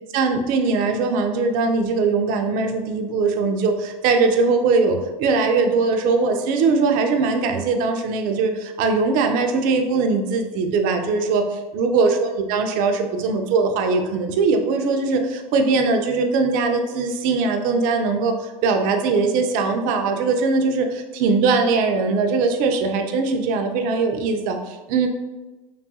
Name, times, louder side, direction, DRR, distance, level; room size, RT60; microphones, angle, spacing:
voice 1, 0.1-25.1, right 4 dB, 50° right, 5 dB, 0.4 m, -21 dB
2.6 x 2.3 x 2.7 m, 1.2 s
hypercardioid pair, 100°, 18 cm